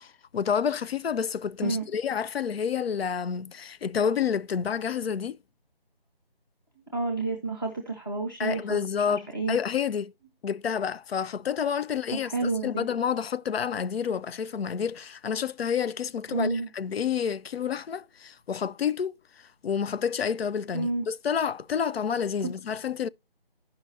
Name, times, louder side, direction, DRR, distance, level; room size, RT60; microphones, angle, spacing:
voice 1, 0.0-5.4 8.4-10.1 10.4-19.2 19.6-23.1, left 7 dB, 80° left, 0.4 m, -29 dB
voice 2, 6.9-9.6 12.2-12.9 16.3-16.7 20.7-21.0 22.4-22.5, right 3 dB, 20° left, 0.7 m, -30 dB
15.0 x 5.6 x 2.6 m
figure-of-eight pair, 170°, 30 cm